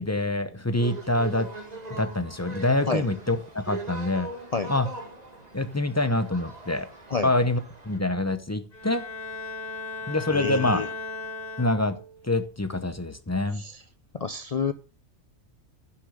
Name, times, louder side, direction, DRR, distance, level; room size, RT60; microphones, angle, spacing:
voice 1, 0.0-1.5 1.9-4.3 4.7-4.9 5.5-6.9 7.2-7.6 7.9-9.0 10.1-10.8 11.6-12.0 12.2-13.6, left 2 dB, 15° left, 11 dB, 0.8 m, -25 dB
sound 1, 0.8-8.0, right 3 dB, 30° right, 2.1 m, -41 dB
Bowed string instrument, 8.7-12.2, left 3 dB, 40° left, 4.0 m, -36 dB
voice 2, 10.3-10.9 13.6-13.8 14.1-14.7, left 5 dB, 60° left, 12 dB, 0.4 m, -28 dB
10.0 x 7.2 x 6.5 m, 0.35 s
omnidirectional pair, 1.4 m